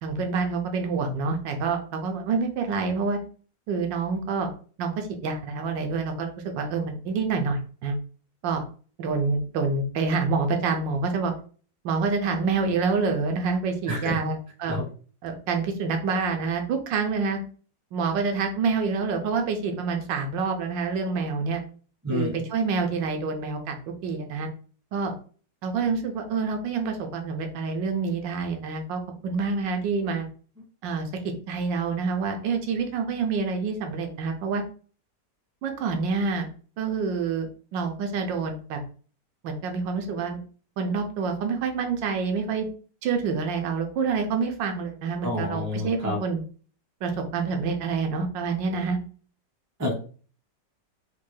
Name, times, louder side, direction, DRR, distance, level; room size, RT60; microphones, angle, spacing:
voice 1, 0.0-3.2 3.7-4.5 4.8-8.0 8.4-8.6 9.0-11.3 11.8-14.8 15.2-17.4 17.9-21.6 22.1-23.8 24.0-24.5 24.9-25.1 25.6-30.3 30.8-31.1 31.5-34.6 35.6-36.5 36.8-37.5 37.7-38.8 39.4-40.4 40.8-42.7 43.0-46.4 47.0-49.0, right 4 dB, 85° right, 4 dB, 1.4 m, -27 dB
voice 2, 13.9-14.3 14.7-14.8 22.0-22.3 45.2-46.2 49.8-50.0, left 1 dB, 25° right, -1 dB, 0.3 m, -28 dB
4.2 x 2.2 x 3.1 m, 0.41 s
omnidirectional pair, 1.9 m